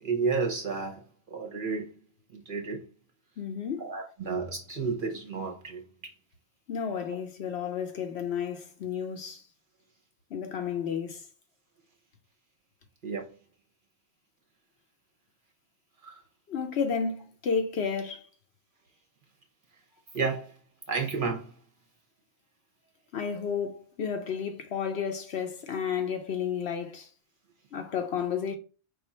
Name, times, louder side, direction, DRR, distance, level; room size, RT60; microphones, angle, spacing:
voice 1, 0.0-1.9 2.3-2.8 3.8-6.1 13.0-13.3 16.0-16.2 20.1-20.6 20.9-21.5, right 4 dB, 50° right, 0.8 m, -32 dB
voice 2, 3.4-3.9 6.7-9.4 10.3-11.2 16.5-18.3 23.1-27.1 27.7-28.5, left 6 dB, 60° left, 0.9 m, -32 dB
4.9 x 2.3 x 4.0 m
omnidirectional pair, 1.3 m